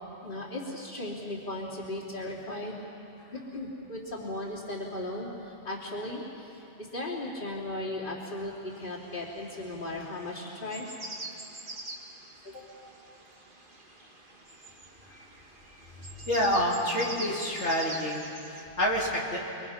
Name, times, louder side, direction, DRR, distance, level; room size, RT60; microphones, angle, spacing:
voice 1, 0.2-2.8 3.3-10.9 12.4-12.6, left 1 dB, 50° left, -4 dB, 3.4 m, -37 dB
sound 1, 8.7-18.6, right 2 dB, 50° right, 1.9 m, -45 dB
voice 2, 16.3-18.2 18.5-19.4, equal, 85° left, -4 dB, 3.1 m, -27 dB
29.5 x 22.5 x 5.8 m, 2.8 s
omnidirectional pair, 1.2 m